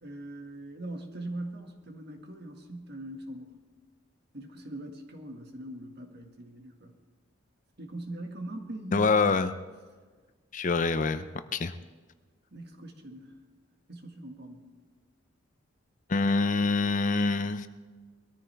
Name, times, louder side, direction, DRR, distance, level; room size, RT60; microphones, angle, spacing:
voice 1, 0.0-3.6 4.3-6.9 7.8-9.1 12.5-13.4 13.9-14.7, right 1 dB, 55° right, 4 dB, 1.8 m, -41 dB
voice 2, 8.9-9.5 10.5-11.3 11.5-11.7 16.1-17.7, left 3 dB, 40° left, 11 dB, 0.6 m, -25 dB
21.5 x 13.5 x 3.4 m, 1.4 s
head